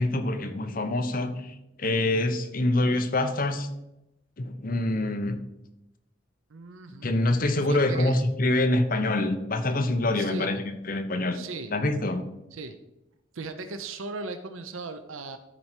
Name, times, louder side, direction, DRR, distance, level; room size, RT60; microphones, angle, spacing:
voice 1, 0.0-3.7 4.4-5.4 7.0-11.4 11.7-12.3, left 2 dB, 45° left, 6 dB, 0.9 m, -26 dB
voice 2, 6.5-7.1 7.6-8.2 10.2-10.5 11.3-11.8 12.5-12.8 13.3-15.4, right 3 dB, 90° right, 9 dB, 0.7 m, -37 dB
13.0 x 4.5 x 4.5 m, 0.91 s
head